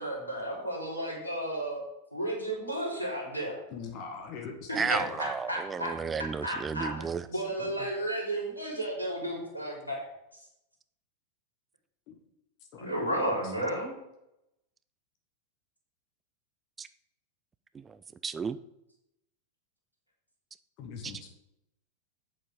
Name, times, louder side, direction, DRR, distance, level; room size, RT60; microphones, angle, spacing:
voice 1, 0.0-1.8 2.1-3.6 4.7-5.9 6.4-6.9 7.3-10.1 12.8-13.9, right 1 dB, 85° left, -3 dB, 3.6 m, -33 dB
voice 2, 3.7-5.3 7.3-7.9 12.1-12.2 12.7-13.1 13.4-13.5 20.8-21.3, left 5 dB, 40° left, 4 dB, 1.4 m, -43 dB
voice 3, 4.7-7.3 16.8-16.9 17.9-18.0 18.2-18.6 21.0-21.1, right 5 dB, 20° right, 14 dB, 0.4 m, -33 dB
8.4 x 7.2 x 5.1 m, 0.84 s
figure-of-eight pair, 90°, 0 cm